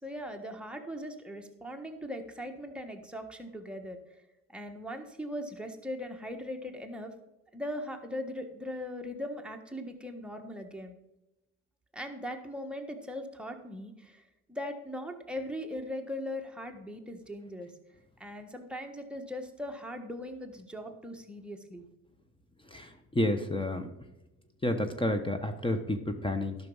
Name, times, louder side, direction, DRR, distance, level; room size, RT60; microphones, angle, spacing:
voice 1, 0.0-4.0 4.5-7.1 7.5-10.9 11.9-14.2 14.5-17.7 18.2-21.8, left 1 dB, 5° right, 3 dB, 1.4 m, -39 dB
voice 2, 22.7-23.9 24.6-26.6, left 1 dB, 15° left, 7 dB, 1.1 m, -30 dB
12.0 x 6.0 x 5.6 m, 0.95 s
cardioid pair, 90°, 30 cm